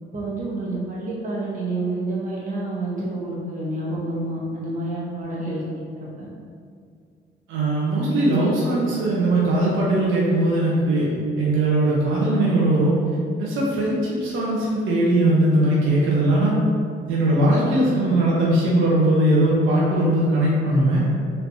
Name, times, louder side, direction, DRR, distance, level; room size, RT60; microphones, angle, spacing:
voice 1, 0.1-5.6 5.9-6.3, right 2 dB, 40° right, -6 dB, 1.3 m, -28 dB
voice 2, 7.5-12.9 13.4-16.5 17.1-21.0, right 1 dB, 80° right, -5 dB, 0.8 m, -20 dB
4.4 x 3.3 x 2.7 m, 2.2 s
cardioid pair, 90°, 20 cm